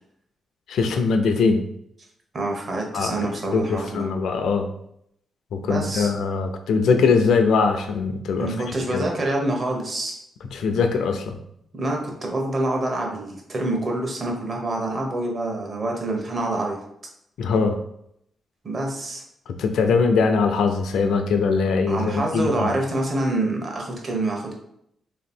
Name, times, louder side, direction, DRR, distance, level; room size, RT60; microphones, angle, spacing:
voice 1, 0.7-1.6 2.9-4.7 5.5-8.5 8.9-9.1 10.5-11.3 17.4-17.8 19.5-22.7, left 4 dB, 85° left, 6 dB, 0.5 m, -21 dB
voice 2, 2.3-4.1 5.7-6.1 8.4-10.5 11.7-16.8 18.6-19.2 21.9-24.5, right 2 dB, 40° right, 1 dB, 1.0 m, -26 dB
3.3 x 3.0 x 4.3 m, 0.74 s
cardioid pair, 110°, 0 cm